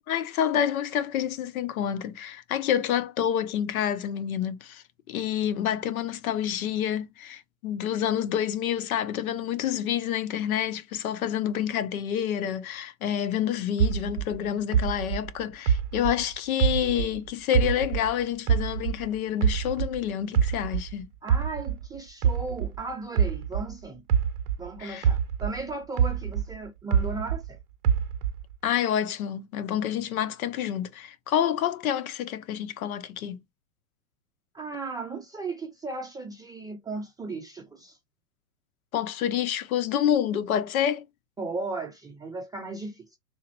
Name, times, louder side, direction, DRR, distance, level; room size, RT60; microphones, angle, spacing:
voice 1, 0.1-21.1 24.8-25.1 28.6-33.4 38.9-41.0, left 10 dB, 75° left, 0.7 m, -28 dB
sound 1, 13.8-17.2 17.5-20.0 20.3-24.7 25.0-27.5 27.8-28.6, right 7 dB, 85° right, 0.6 m, -25 dB
voice 2, 21.2-24.0 24.6-27.6 34.5-38.0 41.4-43.2, right 3 dB, 10° right, 0.5 m, -36 dB
3.7 x 2.1 x 2.8 m
hypercardioid pair, 110°, 43 cm